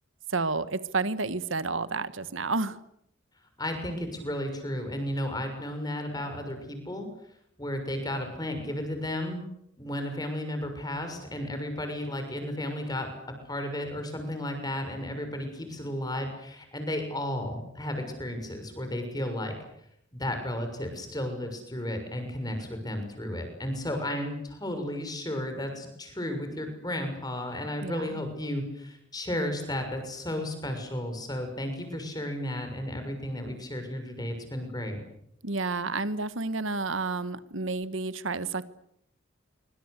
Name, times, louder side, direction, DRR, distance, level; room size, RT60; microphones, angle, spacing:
voice 1, 0.3-2.8 27.8-28.1 35.4-38.7, right 3 dB, 80° right, 14 dB, 1.5 m, -30 dB
voice 2, 3.6-7.1 7.6-9.4 9.8-13.1 13.4-19.5 20.1-35.0, left 1 dB, 20° left, 6 dB, 6.4 m, -33 dB
26.5 x 25.0 x 8.3 m, 0.76 s
head